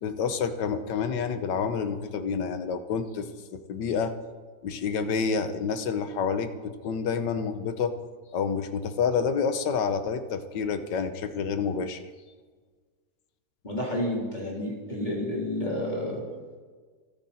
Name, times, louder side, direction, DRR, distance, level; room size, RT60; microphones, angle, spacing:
voice 1, 0.0-4.1 4.6-7.9 8.3-12.0, left 6 dB, 85° left, 10 dB, 1.7 m, -28 dB
voice 2, 13.6-16.2, left 1 dB, 25° left, -4 dB, 3.8 m, -30 dB
27.0 x 10.0 x 4.3 m, 1.5 s
omnidirectional pair, 1.8 m